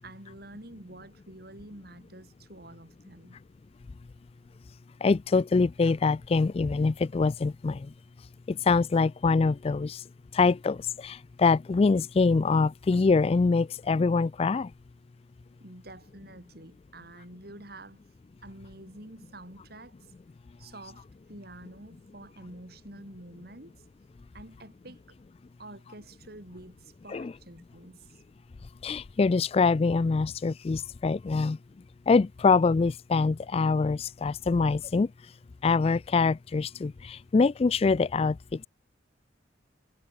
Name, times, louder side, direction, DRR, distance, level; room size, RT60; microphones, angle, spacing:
voice 1, 0.0-3.4 15.6-18.0 18.4-20.1 20.6-23.8 24.3-25.2 25.6-28.2 31.3-31.5, right 1 dB, 55° right, 5.0 m, -48 dB
voice 2, 5.0-7.9 8.5-10.0 10.3-14.7 27.1-27.3 28.8-31.6 32.1-35.1 35.6-38.7, left 4 dB, 30° left, 0.3 m, -24 dB
head